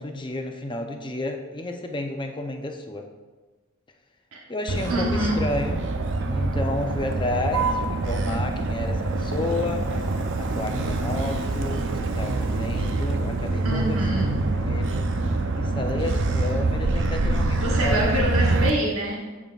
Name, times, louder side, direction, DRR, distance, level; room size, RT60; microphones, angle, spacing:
voice 1, 0.0-3.1 4.5-5.8 6.3-9.9 10.4-15.1 15.5-18.1, left 2 dB, 25° left, 4 dB, 0.7 m, -31 dB
Motor vehicle (road), 4.7-18.7, right 2 dB, 65° right, 0.6 m, -25 dB
voice 2, 4.9-5.3 13.6-14.3 17.6-19.3, right 1 dB, 85° right, -2 dB, 1.1 m, -26 dB
9.0 x 7.3 x 2.4 m, 1.3 s
head